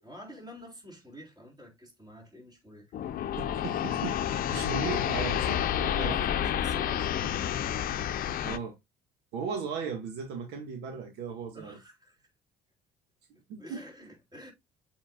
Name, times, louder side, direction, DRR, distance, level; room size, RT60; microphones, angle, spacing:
voice 1, 0.0-2.9 6.4-7.4 11.5-12.1 13.3-14.5, equal, 25° right, 4.0 m, -48 dB
sound 1, 2.9-8.6, left 10 dB, 60° left, 0.7 m, -29 dB
voice 2, 3.4-6.2 8.4-8.8 9.3-11.8 13.5-13.8, right 5 dB, 85° right, 1.7 m, -37 dB
7.8 x 5.6 x 2.4 m
cardioid pair, 110°, 17 cm